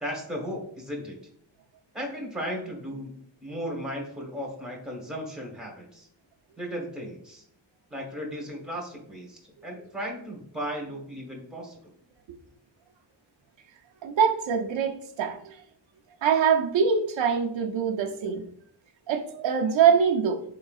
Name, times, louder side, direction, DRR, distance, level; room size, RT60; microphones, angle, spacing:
voice 1, 0.0-1.2 1.9-6.1 6.6-7.4 7.9-11.8, equal, ahead, 1.0 m, -36 dB
voice 2, 14.0-15.6 16.2-18.4 19.1-20.4, right 7 dB, 85° right, 0.6 m, -24 dB
3.9 x 3.8 x 2.3 m
wide cardioid pair, 140°, 44 cm